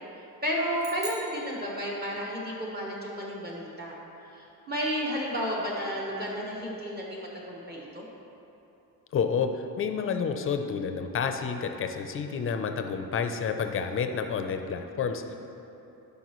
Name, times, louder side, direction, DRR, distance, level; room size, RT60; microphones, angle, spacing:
voice 1, 0.4-4.0 4.3-8.0, equal, 25° right, -4 dB, 1.1 m, -32 dB
sound 1, 0.8-2.4, right 4 dB, 55° right, 1.2 m, -44 dB
voice 2, 9.1-15.4, left 6 dB, 35° left, 6 dB, 0.5 m, -29 dB
12.0 x 5.4 x 3.1 m, 2.9 s
cardioid pair, 135°, 38 cm